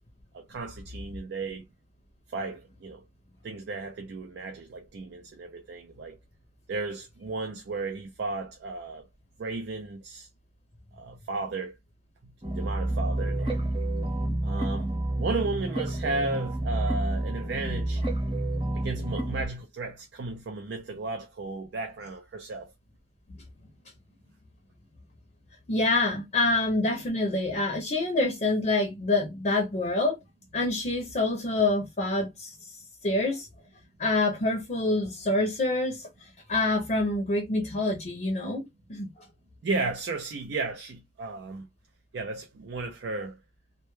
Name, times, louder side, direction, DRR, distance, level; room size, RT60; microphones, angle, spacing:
voice 1, 0.3-1.7 2.3-3.0 3.4-6.2 6.7-9.1 9.4-10.3 11.0-11.7 12.6-13.6 14.4-14.9 15.2-18.0 18.7-22.7 39.6-41.7 42.1-43.4, right 3 dB, 85° right, 0.4 m, -34 dB
sound 1, 12.4-19.5, right 1 dB, 30° right, 0.9 m, -29 dB
voice 2, 25.7-30.2 30.5-33.5 34.0-39.1, left 2 dB, 45° left, 0.5 m, -27 dB
2.2 x 2.1 x 3.0 m
head